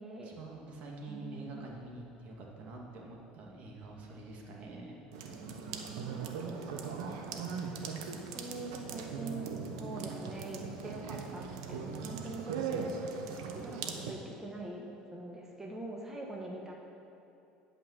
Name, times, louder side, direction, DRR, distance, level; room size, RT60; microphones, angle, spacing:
voice 1, 0.2-5.0, right 2 dB, 55° right, -1 dB, 2.0 m, -46 dB
voice 2, 1.1-1.6 5.3-9.5 9.8-12.9 13.5-16.7, right 2 dB, 15° right, -1 dB, 1.4 m, -44 dB
sound 1, 5.1-14.1, right 5 dB, 90° right, 0.9 m, -39 dB
11.5 x 5.6 x 7.3 m, 2.7 s
supercardioid pair, 100°, 3 cm